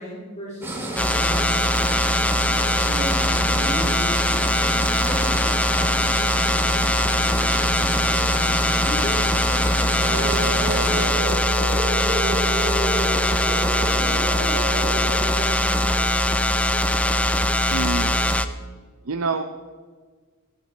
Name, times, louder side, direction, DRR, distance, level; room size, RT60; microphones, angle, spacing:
voice 1, 0.0-1.9 2.8-4.2 5.0-6.7 6.9-7.7 8.1-8.2 8.8-16.5, equal, 35° left, -6 dB, 3.1 m, -36 dB
sound 1, 0.6-11.1, right 2 dB, 10° right, 2.2 m, -30 dB
sound 2, 1.0-18.5, left 1 dB, 5° left, 0.6 m, -21 dB
sound 3, 10.0-15.6, right 2 dB, 30° right, 0.7 m, -29 dB
voice 2, 17.7-18.2 19.1-19.4, right 4 dB, 70° right, 6 dB, 0.7 m, -26 dB
15.5 x 12.0 x 4.5 m, 1.5 s
head